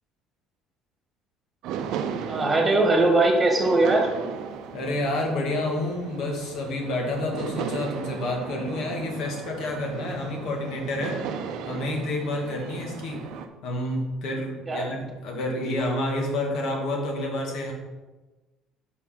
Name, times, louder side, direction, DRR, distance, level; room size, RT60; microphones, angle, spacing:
sound 1, 1.6-13.5, right 7 dB, 70° right, 0.6 m, -36 dB
voice 1, 2.3-4.1 14.7-14.9, right 2 dB, 20° right, 1 dB, 1.6 m, -20 dB
voice 2, 4.7-13.3 13.6-17.7, left 1 dB, 65° left, 0 dB, 1.8 m, -29 dB
5.5 x 4.6 x 5.7 m, 1.2 s
cardioid pair, 120°, 0 cm